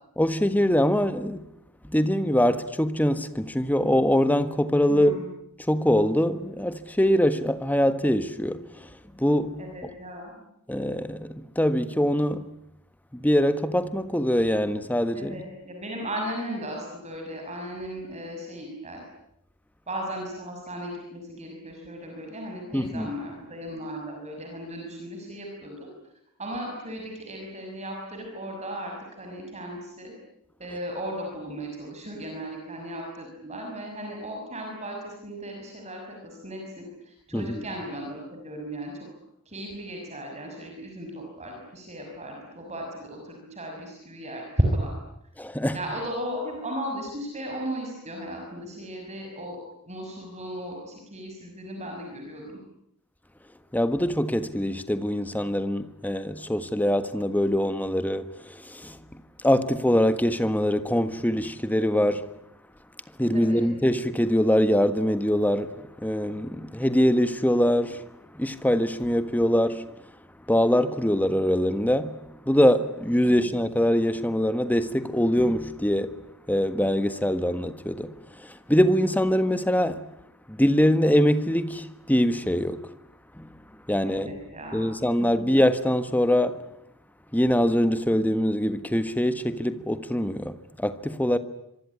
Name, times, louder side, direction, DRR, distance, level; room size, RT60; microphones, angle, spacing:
voice 1, 0.2-1.5 1.8-5.2 5.6-9.6 10.7-12.5 13.1-15.4 22.7-23.1 37.3-37.6 45.4-45.8 53.7-59.0 59.4-62.3 63.2-69.9 70.5-76.2 76.5-80.1 80.5-82.9 83.3-83.6 83.9-84.3 84.7-86.6 87.3-91.4, equal, 10° left, 1.5 m, -23 dB
voice 2, 4.9-5.3 9.6-10.5 15.1-19.0 19.9-25.9 26.4-30.1 30.6-39.1 39.5-44.9 45.7-49.6 49.9-52.6 63.3-63.6 73.2-73.4 84.0-84.9 85.2-85.4, equal, 30° right, 6.3 m, -35 dB
25.5 x 24.0 x 9.8 m
head